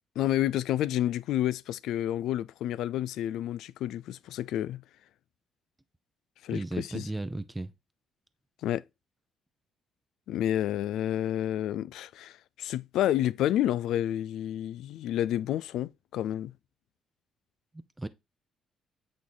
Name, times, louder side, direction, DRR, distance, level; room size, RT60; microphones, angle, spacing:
voice 1, 0.2-4.8 6.4-7.1 8.6-8.8 10.3-16.5, left 12 dB, 80° left, 0.3 m, -30 dB
voice 2, 6.5-7.7 18.0-18.1, right 2 dB, 10° right, 0.6 m, -34 dB
8.4 x 3.1 x 3.8 m
cardioid pair, 75°, 0 cm